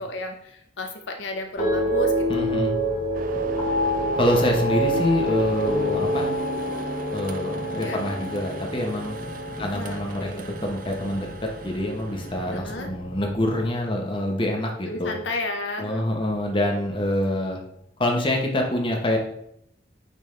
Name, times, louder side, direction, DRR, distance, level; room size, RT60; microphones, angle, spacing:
voice 1, 0.0-2.5 7.8-8.0 9.6-10.5 12.5-12.9 14.9-16.3, left 2 dB, 75° left, 4 dB, 0.7 m, -33 dB
sound 1, 1.6-11.9 12.2-12.8, equal, 45° left, 1.5 m, -27 dB
voice 2, 2.3-2.7 4.1-6.3 7.1-9.2 9.6-10.3 10.6-15.2 15.8-17.6 18.0-19.2, left 1 dB, 30° left, 1 dB, 1.0 m, -26 dB
sound 2, 2.9-6.5 8.9-13.7 14.7-14.9 16.0-17.1, equal, 15° right, 0.9 m, -43 dB
sound 3, 3.1-12.6, right 4 dB, 45° right, 0.5 m, -39 dB
9.5 x 3.6 x 3.3 m, 0.73 s
head